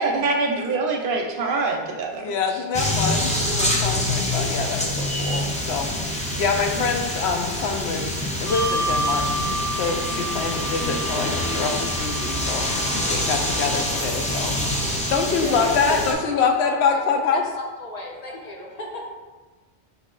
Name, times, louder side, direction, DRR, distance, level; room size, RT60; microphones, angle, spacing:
voice 1, 0.0-2.2, right 3 dB, 60° right, 2 dB, 0.7 m, -24 dB
voice 2, 2.2-8.1 8.4-9.3 9.7-14.5 15.1-17.4, left 5 dB, 85° left, 4 dB, 0.9 m, -25 dB
sound 1, 2.7-16.1, left 1 dB, 10° left, 0.4 m, -26 dB
Bell, 8.5-15.3, right 1 dB, 15° right, 0.8 m, -31 dB
voice 3, 15.4-17.0 17.3-19.1, left 1 dB, 45° left, 0 dB, 0.7 m, -33 dB
4.7 x 2.7 x 3.8 m, 1.3 s
omnidirectional pair, 1.0 m